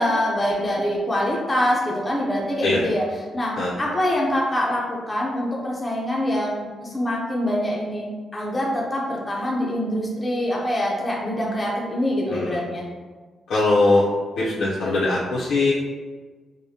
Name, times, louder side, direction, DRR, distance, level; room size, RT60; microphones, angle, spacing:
voice 1, 0.0-3.0 3.3-12.8, left 1 dB, 15° left, -4 dB, 0.5 m, -24 dB
voice 2, 12.3-12.6 13.5-14.0 14.4-15.7, left 2 dB, 65° left, -7 dB, 0.5 m, -21 dB
4.8 x 2.1 x 2.7 m, 1.4 s
wide cardioid pair, 170°, 0 cm